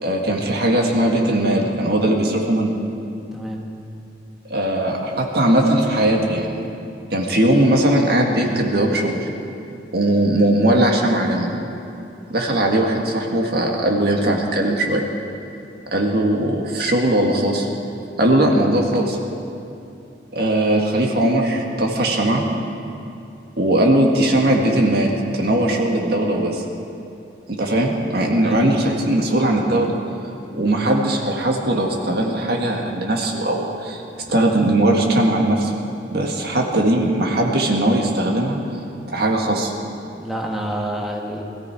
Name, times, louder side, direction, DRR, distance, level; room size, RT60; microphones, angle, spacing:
voice 1, 0.0-2.7 4.5-6.7 7.1-9.3 9.9-11.5 12.3-15.1 15.9-17.7 18.2-19.2 20.3-22.4 23.6-26.6 27.5-29.9 30.5-34.0 34.3-35.7 36.1-38.6 39.1-39.7, right 1 dB, 55° right, 1 dB, 1.8 m, -19 dB
voice 2, 3.3-3.7 28.4-28.6 30.6-30.8 40.2-41.4, right 1 dB, ahead, -1 dB, 1.3 m, -28 dB
21.0 x 14.0 x 4.7 m, 2.7 s
head